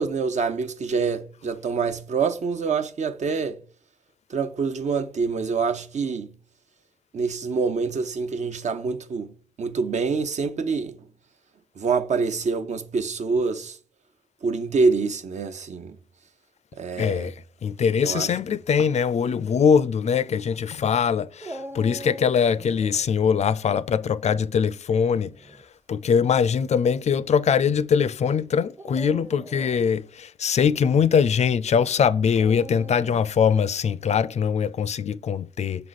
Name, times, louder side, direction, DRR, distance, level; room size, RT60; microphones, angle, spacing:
voice 1, 0.0-3.6 4.3-6.3 7.1-10.9 11.8-13.8 14.4-16.0 16.8-17.3 18.0-18.3, right 4 dB, 60° right, 0.8 m, -26 dB
voice 2, 17.0-17.3 17.6-25.3 25.9-35.9, left 7 dB, 55° left, 0.4 m, -22 dB
Dog, 21.4-23.1 25.1-25.6 26.4-26.5 28.7-29.9 32.4-33.4, right 1 dB, 20° right, 0.7 m, -41 dB
6.7 x 4.8 x 4.0 m
cardioid pair, 100°, 13 cm